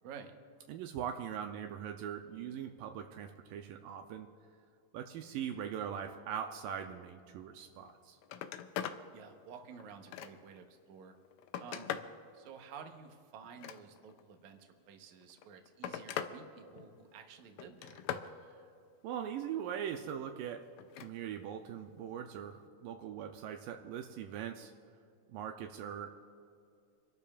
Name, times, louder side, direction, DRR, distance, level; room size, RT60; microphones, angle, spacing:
voice 1, 0.0-0.3 9.1-11.2 11.6-11.9 12.3-18.0, right 6 dB, 65° right, 4 dB, 2.2 m, -52 dB
voice 2, 0.7-4.3 4.9-8.2 19.0-20.6 21.0-24.7 25.3-26.1, right 9 dB, 85° right, 4 dB, 2.2 m, -41 dB
Telephone, 7.8-7.9 8.2-9.0 9.5-10.6 11.2-12.2 13.4-14.2 15.2-16.4 16.7-17.2 17.6-18.3 20.8-21.1 22.5-22.6, left 10 dB, 85° left, 1.6 m, -41 dB
28.5 x 12.0 x 2.4 m, 2.4 s
omnidirectional pair, 4.0 m